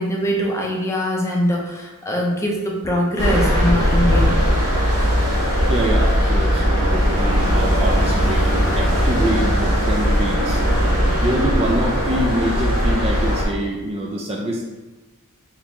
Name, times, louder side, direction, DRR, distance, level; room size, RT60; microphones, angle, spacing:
voice 1, 0.0-4.4, equal, 15° left, -2 dB, 0.6 m, -22 dB
sound 1, 3.2-13.4, equal, 80° right, 1.3 m, -18 dB
voice 2, 5.7-10.6 11.2-14.6, right 1 dB, 25° right, -1 dB, 0.4 m, -25 dB
4.0 x 2.9 x 3.5 m, 1.1 s
head